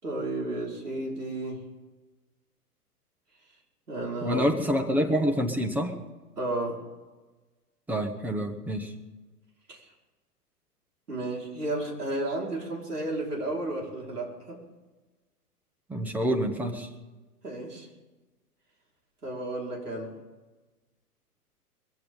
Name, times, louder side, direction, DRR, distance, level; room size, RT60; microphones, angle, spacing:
voice 1, 0.0-1.6 3.9-4.4 6.4-6.8 9.7-9.8 11.1-14.6 17.4-17.9 19.2-20.1, right 2 dB, 75° right, -2 dB, 5.1 m, -32 dB
voice 2, 4.2-5.9 7.9-8.9 15.9-16.9, equal, 5° right, 4 dB, 0.7 m, -27 dB
22.0 x 15.5 x 3.9 m, 1.2 s
figure-of-eight pair, 115°, 46 cm